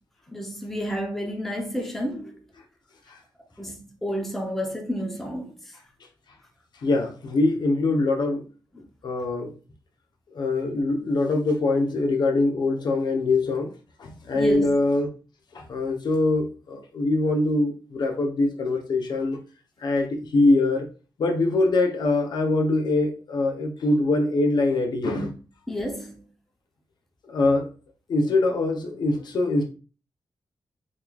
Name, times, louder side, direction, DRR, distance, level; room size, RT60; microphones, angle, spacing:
voice 1, 0.3-2.4 3.6-5.5 14.3-14.8 25.7-26.2, equal, 5° left, 0.5 m, -31 dB
voice 2, 6.8-8.5 9.0-9.5 10.3-13.7 14.0-15.1 15.5-19.4 19.8-20.9 21.2-25.3 27.3-27.7 28.1-29.6, left 2 dB, 70° left, 0.7 m, -23 dB
3.8 x 3.1 x 2.3 m
wide cardioid pair, 150°, 8 cm